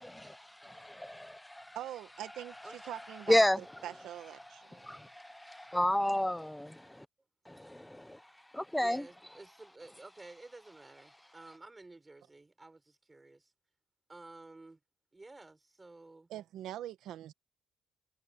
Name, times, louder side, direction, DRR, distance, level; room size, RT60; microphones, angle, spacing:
voice 1, 0.0-1.8 3.3-3.6 4.8-7.1 7.5-8.2 8.5-9.0, left 1 dB, 5° left, 0.7 m, -32 dB
voice 2, 1.7-4.9 16.3-17.3, right 12 dB, 85° right, 1.6 m, -43 dB
voice 3, 8.8-13.5 14.1-14.8 15.1-16.3, right 2 dB, 15° right, 5.8 m, -52 dB
cardioid pair, 120°, 0 cm